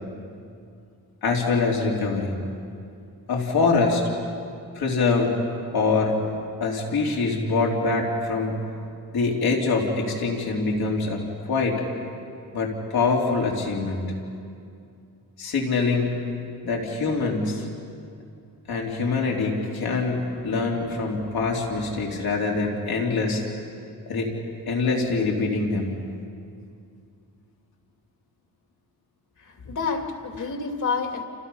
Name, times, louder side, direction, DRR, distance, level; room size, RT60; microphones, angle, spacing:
voice 1, 1.2-2.4 3.3-4.0 4.7-5.4 5.7-6.2 6.6-8.6 9.1-11.8 12.5-14.0 15.4-16.2 16.6-17.7 18.7-23.5 24.1-24.3 24.7-25.9, left 4 dB, 80° left, -1 dB, 3.6 m, -24 dB
voice 2, 29.4-31.2, left 5 dB, 55° left, 3 dB, 2.7 m, -29 dB
29.5 x 29.5 x 5.7 m, 2.5 s
wide cardioid pair, 165°, 36 cm